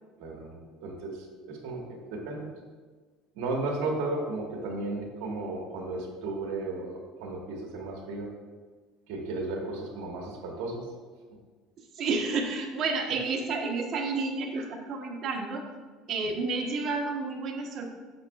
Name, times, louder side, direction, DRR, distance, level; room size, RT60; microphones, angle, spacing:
voice 1, 0.2-2.5 3.3-8.3 9.1-10.8 14.5-14.7 16.2-16.3, right 2 dB, 75° right, 0 dB, 1.4 m, -34 dB
voice 2, 11.8-15.6 16.1-17.9, right 3 dB, 45° right, 2 dB, 1.0 m, -30 dB
8.5 x 6.2 x 2.3 m, 1.4 s
supercardioid pair, 120°, 0 cm